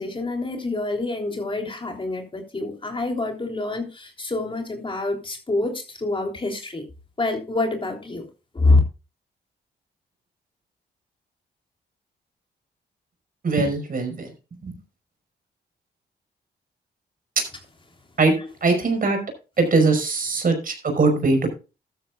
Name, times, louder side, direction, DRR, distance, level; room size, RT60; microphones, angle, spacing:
voice 1, 0.0-6.8 7.2-8.3 8.5-8.8, left 2 dB, 30° left, 3.5 m, -26 dB
voice 2, 13.4-14.3 14.6-14.7 18.2-18.3 18.6-19.2 19.6-21.5, right 3 dB, 50° right, 5.1 m, -21 dB
13.5 x 13.0 x 2.4 m
cardioid pair, 65°, 18 cm